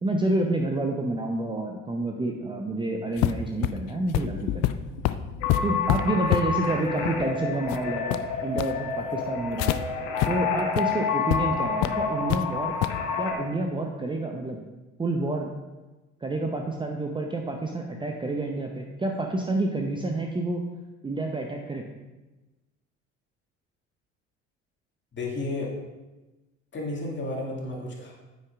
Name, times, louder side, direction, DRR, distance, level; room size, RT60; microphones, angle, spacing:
voice 1, 0.0-4.8 5.6-8.0 8.4-9.8 10.3-12.7 13.2-14.6 15.0-15.5 16.2-20.6 21.0-21.9, right 2 dB, 15° right, 2 dB, 0.7 m, -29 dB
sound 1, 3.2-9.8 10.2-10.3 10.7-10.8 11.3-11.4 11.8-12.4 12.8-13.0, left 15 dB, 45° left, 0.5 m, -28 dB
sound 2, 5.4-13.3, left 5 dB, 65° left, 1.4 m, -29 dB
voice 2, 25.1-25.7 26.7-28.1, left 2 dB, 30° left, -2 dB, 2.2 m, -32 dB
9.6 x 8.5 x 2.5 m, 1.1 s
figure-of-eight pair, 55°, 38 cm